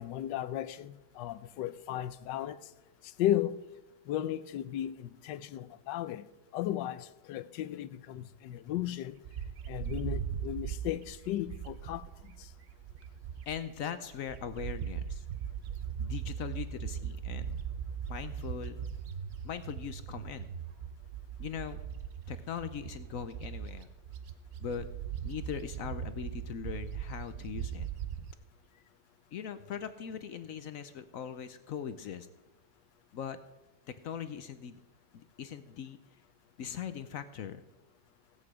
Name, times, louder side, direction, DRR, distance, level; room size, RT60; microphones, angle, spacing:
voice 1, 0.0-2.6 3.2-3.6 4.1-6.2 6.5-9.2 9.7-12.0, left 12 dB, 80° left, 1.3 m, -35 dB
Bird, 9.3-13.7 14.1-28.3, right 8 dB, 90° right, 0.5 m, -39 dB
voice 2, 13.5-15.3 16.0-17.6 18.1-18.8 19.4-20.5 21.4-21.8 22.3-23.9 24.6-24.8 25.2-27.9 28.7-28.8 29.3-32.3 33.1-33.4 34.0-34.8 35.1-36.0 36.6-37.6, left 8 dB, 65° left, 0.9 m, -40 dB
16.5 x 8.4 x 4.8 m
omnidirectional pair, 1.9 m